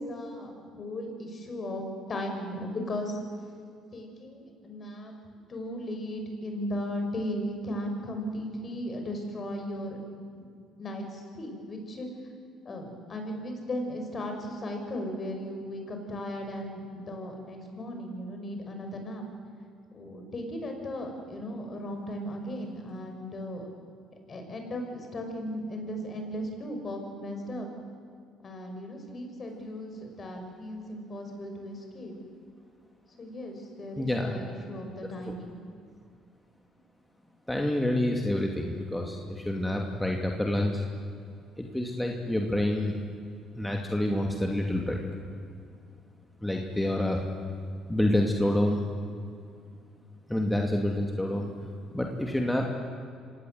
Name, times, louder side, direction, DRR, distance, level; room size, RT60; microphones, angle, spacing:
voice 1, 0.1-3.2 3.9-5.1 5.5-10.0 10.3-10.4 10.8-12.1 12.6-19.2 19.9-23.7 24.3-27.7 28.4-32.1 33.2-35.6, left 1 dB, 40° left, 4 dB, 6.0 m, -36 dB
voice 2, 34.0-34.3 35.3-35.4 37.5-40.8 41.6-42.9 43.6-45.0 46.4-47.2 47.9-48.8 50.3-51.5 51.9-52.7, left 1 dB, 10° left, 1 dB, 2.5 m, -28 dB
26.0 x 18.0 x 7.9 m, 2.3 s
hypercardioid pair, 65°, 0 cm